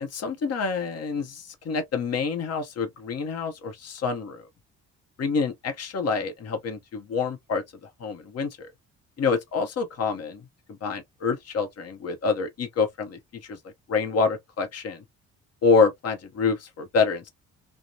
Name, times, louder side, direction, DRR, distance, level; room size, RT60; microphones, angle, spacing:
voice 1, 0.0-4.4 5.2-7.6 8.0-8.7 9.2-10.4 10.7-13.6 13.9-15.0 15.6-17.3, left 4 dB, 55° left, 0.9 m, -27 dB
2.8 x 2.1 x 2.3 m
cardioid pair, 90°, 30 cm